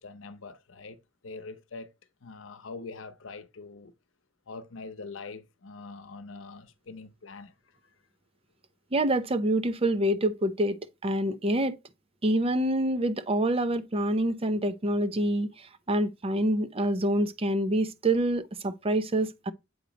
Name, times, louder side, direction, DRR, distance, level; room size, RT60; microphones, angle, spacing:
voice 1, 0.0-1.9 2.2-3.9 4.5-7.5, left 3 dB, 85° left, 0.8 m, -43 dB
voice 2, 8.9-10.8 11.0-11.7 12.2-19.5, right 1 dB, 30° right, 0.6 m, -26 dB
7.8 x 2.9 x 5.0 m
head